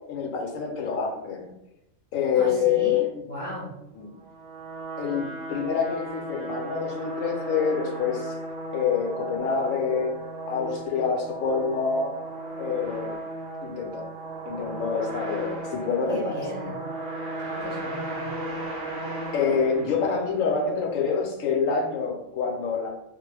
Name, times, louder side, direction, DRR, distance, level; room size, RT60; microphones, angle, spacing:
voice 1, 0.1-1.5 2.1-3.3 4.0-4.1 5.0-8.3 8.7-10.2 10.5-12.2 12.6-13.2 13.6-14.0 14.4-16.4 19.3-22.9, left 6 dB, 75° left, 1 dB, 0.9 m, -26 dB
voice 2, 2.3-3.7 16.1-16.8 17.4-18.3, equal, 45° left, -7 dB, 0.7 m, -35 dB
sound 1, 4.2-20.5, right 2 dB, 40° right, 0.5 m, -35 dB
2.3 x 2.0 x 3.1 m, 0.88 s
omnidirectional pair, 1.4 m